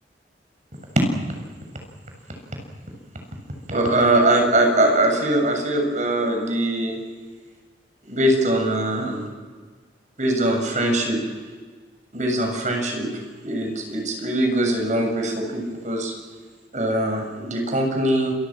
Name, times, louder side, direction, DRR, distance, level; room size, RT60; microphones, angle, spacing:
voice 1, 3.7-7.0 8.1-9.3 10.2-11.2 12.1-13.1 13.4-16.1 16.7-18.3, right 1 dB, 45° right, 3 dB, 7.3 m, -22 dB
28.5 x 24.5 x 6.2 m, 1.5 s
head